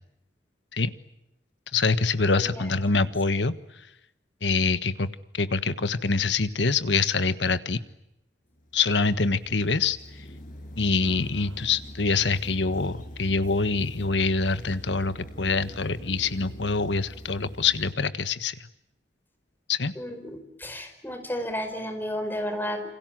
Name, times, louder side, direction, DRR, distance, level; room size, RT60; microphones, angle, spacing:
voice 1, 1.7-3.5 4.4-5.1 5.3-7.8 8.7-10.0 10.8-18.7 19.7-19.9, left 4 dB, 85° left, 13 dB, 1.5 m, -25 dB
voice 2, 2.4-3.0 19.9-22.8, equal, 10° left, 6 dB, 5.1 m, -33 dB
sound 1, 8.5-17.9, equal, 50° left, 6.8 m, -43 dB
28.5 x 26.5 x 7.7 m, 0.84 s
head